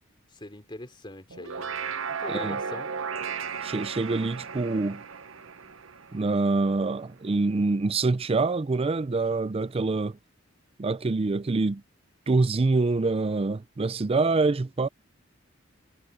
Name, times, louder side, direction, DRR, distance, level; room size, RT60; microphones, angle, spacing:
voice 1, 0.3-2.9, left 1 dB, 25° left, 3.2 m, -42 dB
sound 1, 1.3-6.8, right 6 dB, 85° right, 0.9 m, -35 dB
voice 2, 2.3-2.6 3.6-5.0 6.1-10.2 10.8-11.8 12.3-14.9, right 3 dB, 30° right, 0.4 m, -25 dB
head